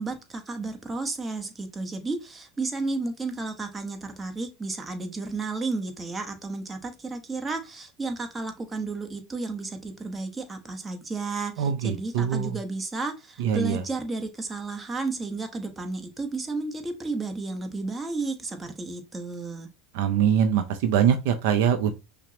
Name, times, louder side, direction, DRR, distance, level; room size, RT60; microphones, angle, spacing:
voice 1, 0.0-19.7, right 3 dB, 20° right, 0.9 m, -32 dB
voice 2, 11.6-12.5 13.4-13.8 20.0-21.9, right 8 dB, 70° right, 0.5 m, -23 dB
5.7 x 2.0 x 2.8 m
hypercardioid pair, 80°, 0 cm